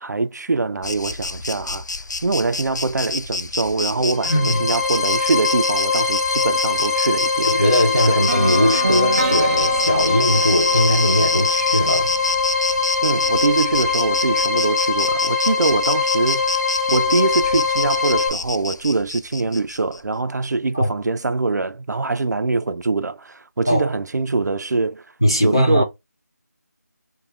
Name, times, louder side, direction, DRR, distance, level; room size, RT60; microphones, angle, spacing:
voice 1, 0.0-1.9 2.2-7.5 8.1-8.2 13.0-16.6 16.9-25.0 25.4-25.8, right 3 dB, 75° right, 0.4 m, -23 dB
Insect, 0.8-20.0, left 3 dB, 90° left, 0.4 m, -28 dB
sound 1, 4.1-18.3, left 4 dB, 60° left, 1.3 m, -22 dB
voice 2, 4.2-4.7 7.5-12.2 20.7-20.9 23.7-23.9 25.2-25.8, equal, 15° left, 0.3 m, -20 dB
sound 2, 8.3-12.2, right 3 dB, 30° right, 0.7 m, -27 dB
3.0 x 2.2 x 4.0 m
figure-of-eight pair, 175°, 9 cm